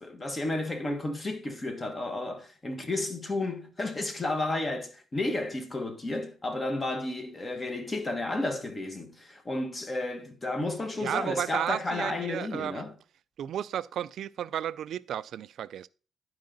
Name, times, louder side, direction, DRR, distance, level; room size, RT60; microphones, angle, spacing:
voice 1, 0.0-13.0, left 2 dB, 25° left, 1.4 m, -32 dB
voice 2, 11.0-12.8 13.4-15.9, right 10 dB, 70° right, 0.3 m, -33 dB
10.5 x 4.7 x 3.9 m
cardioid pair, 90°, 0 cm